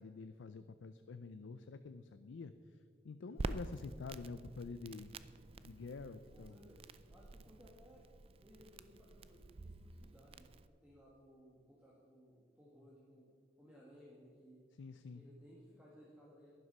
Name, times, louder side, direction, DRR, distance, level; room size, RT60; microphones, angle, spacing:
voice 1, 0.0-5.1 5.6-6.5 14.8-15.2, left 4 dB, 90° left, 11 dB, 0.4 m, -48 dB
Crackle, 3.4-10.7, right 3 dB, 30° right, 0.3 m, -48 dB
voice 2, 6.3-6.8 7.1-8.0 8.4-13.3 13.6-14.6 15.1-16.5, equal, 5° right, -5 dB, 1.6 m, -61 dB
11.0 x 11.0 x 5.5 m, 2.2 s
head